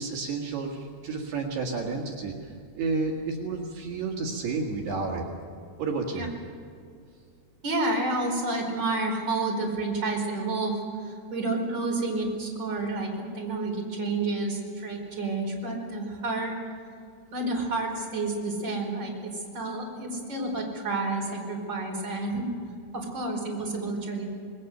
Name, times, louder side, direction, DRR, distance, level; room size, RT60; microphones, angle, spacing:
voice 1, 0.0-5.2 5.8-6.3, right 4 dB, 75° right, -1 dB, 4.0 m, -31 dB
voice 2, 7.6-16.6 17.3-22.5 22.9-24.3, right 2 dB, 25° right, -1 dB, 5.1 m, -30 dB
28.0 x 20.5 x 6.8 m, 2.3 s
omnidirectional pair, 4.7 m